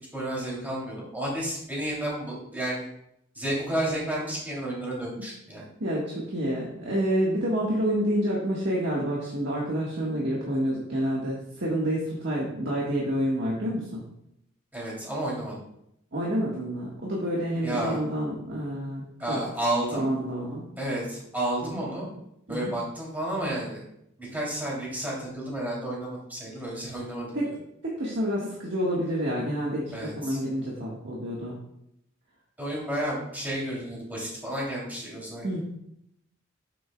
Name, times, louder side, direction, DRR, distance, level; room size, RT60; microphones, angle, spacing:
voice 1, 0.1-2.9 3.3-5.7 14.7-15.6 17.6-18.0 19.2-20.1 20.8-22.1 22.5-23.8 24.2-27.6 29.9-30.4 32.6-35.6, right 1 dB, 10° right, -5 dB, 2.8 m, -31 dB
voice 2, 5.8-14.0 16.1-19.4 19.9-20.7 21.6-21.8 22.5-22.7 27.3-27.5 27.8-31.5 35.4-35.6, equal, 60° right, -4 dB, 1.6 m, -28 dB
8.8 x 7.7 x 2.3 m, 0.77 s
head